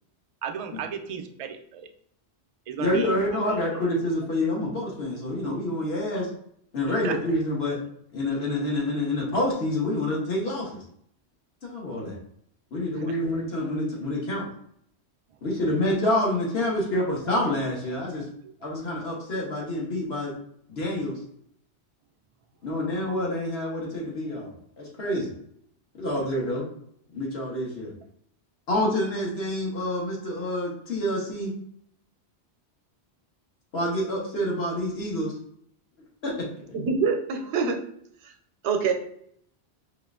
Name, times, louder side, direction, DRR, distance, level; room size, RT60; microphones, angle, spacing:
voice 1, 0.4-1.9 2.7-3.8 6.8-7.2 13.0-13.2 16.7-16.8 18.4-18.5 26.2-26.3, right 8 dB, 60° right, 5 dB, 0.3 m, -35 dB
voice 2, 2.8-6.3 6.7-7.8 8.1-10.8 11.6-12.2 12.7-14.4 15.4-18.3 18.6-20.3 20.7-21.2 22.6-25.3 26.0-26.7 27.1-27.9 28.7-31.5 33.7-35.3 36.2-36.5, left 1 dB, 65° left, -3 dB, 1.5 m, -27 dB
voice 3, 36.7-37.8 38.2-38.3 38.6-38.9, right 5 dB, 85° right, 6 dB, 0.9 m, -25 dB
4.4 x 2.4 x 3.5 m, 0.67 s
omnidirectional pair, 1.1 m